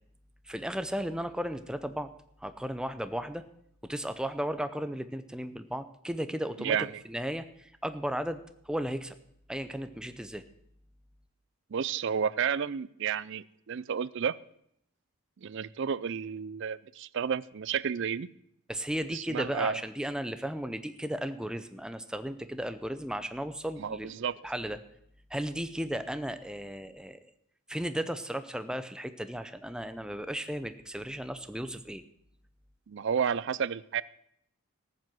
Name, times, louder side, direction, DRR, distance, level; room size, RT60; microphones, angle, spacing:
voice 1, 0.4-2.1 2.4-3.4 3.8-9.2 9.5-10.4 18.7-24.1 24.4-24.8 25.3-27.3 27.7-32.0, equal, 5° right, 10 dB, 0.6 m, -35 dB
voice 2, 11.7-14.3 15.4-18.3 19.1-19.8 23.8-24.3 32.9-34.0, right 7 dB, 55° right, 19 dB, 0.4 m, -31 dB
14.0 x 7.6 x 7.8 m, 0.73 s
head